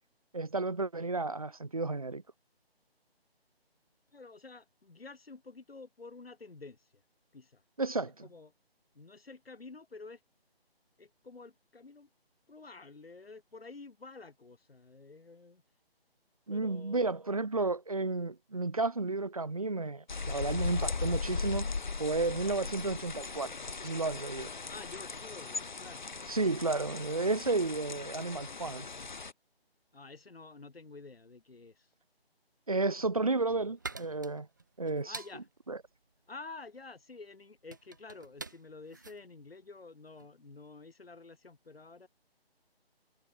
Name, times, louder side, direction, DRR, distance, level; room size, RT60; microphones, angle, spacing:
voice 1, 0.3-2.2 7.8-8.1 16.5-21.7 22.0-23.5 23.8-24.5 26.3-28.9 32.7-34.5 34.8-35.1 35.7-35.8, right 3 dB, 35° right, 0.8 m, -32 dB
voice 2, 4.1-7.0 7.3-7.6 8.2-8.5 9.0-10.2 11.0-12.1 12.5-15.6 16.5-17.1 24.7-26.1 29.9-31.9 33.5-34.1 35.0-35.5 36.3-42.1, left 3 dB, 70° left, 3.6 m, -50 dB
sound 1, 20.1-29.3, left 4 dB, 50° left, 0.6 m, -38 dB
sound 2, 33.0-40.4, right 4 dB, 20° right, 1.3 m, -48 dB
figure-of-eight pair, 175°, 31 cm